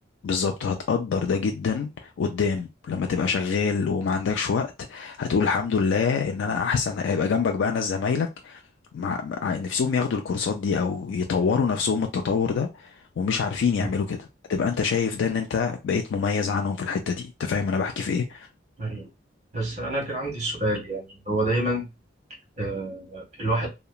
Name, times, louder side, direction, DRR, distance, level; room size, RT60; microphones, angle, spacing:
voice 1, 0.2-8.6 8.9-14.2 14.5-18.5, left 5 dB, 85° left, 0.3 m, -25 dB
voice 2, 19.5-21.9 22.6-23.7, right 1 dB, 40° right, 1.2 m, -28 dB
2.8 x 2.1 x 2.3 m
head